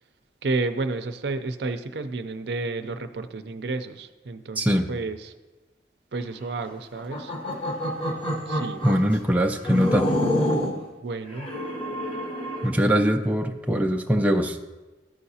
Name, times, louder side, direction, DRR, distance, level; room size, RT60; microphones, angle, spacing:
voice 1, 0.4-5.3 6.1-7.3 8.5-8.8 11.0-11.5, right 3 dB, 65° right, 9 dB, 0.5 m, -31 dB
voice 2, 4.6-4.9 8.8-10.1 12.6-14.6, equal, 10° right, 3 dB, 0.3 m, -22 dB
sound 1, 7.0-9.1 9.6-10.8 11.3-12.8, equal, 30° left, 1.0 m, -27 dB
14.0 x 5.7 x 2.8 m, 1.2 s
head